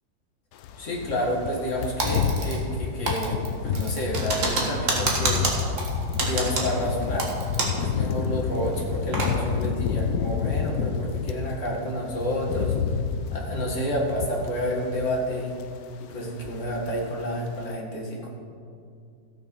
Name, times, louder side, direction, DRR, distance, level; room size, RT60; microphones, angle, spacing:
sound 1, 0.6-11.5 11.9-15.3 15.5-15.8 16.1-16.9 17.2-17.4, left 6 dB, 70° left, 0.9 m, -29 dB
voice 1, 0.8-5.5 6.1-7.3 7.8-12.8 13.3-15.5 16.0-18.3, equal, 40° left, -2 dB, 2.2 m, -29 dB
Typing, 2.0-2.8 3.1-7.9 8.2-8.3 8.7-9.3, right 2 dB, 45° right, 1.8 m, -28 dB
15.0 x 6.6 x 5.4 m, 2.4 s
omnidirectional pair, 2.0 m